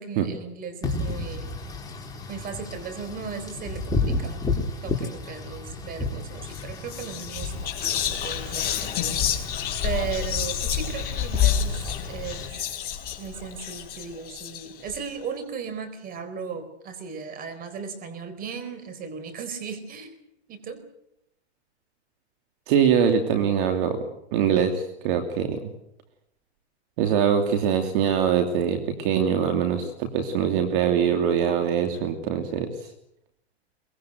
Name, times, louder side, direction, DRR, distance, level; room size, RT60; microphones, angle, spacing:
voice 1, 0.0-1.6 2.3-4.4 4.8-9.5 9.8-12.7 13.2-20.8, right 6 dB, 25° right, 11 dB, 4.4 m, -36 dB
Wind / Rain, 0.8-12.5, left 2 dB, 10° left, 3.8 m, -33 dB
Whispering, 6.4-6.6 6.9-15.0, left 9 dB, 30° left, 4.3 m, -28 dB
voice 2, 22.7-24.0 24.3-25.7 27.0-32.7, right 8 dB, 50° right, 6 dB, 2.9 m, -23 dB
23.5 x 21.0 x 7.9 m, 0.79 s
hypercardioid pair, 140°, 34 cm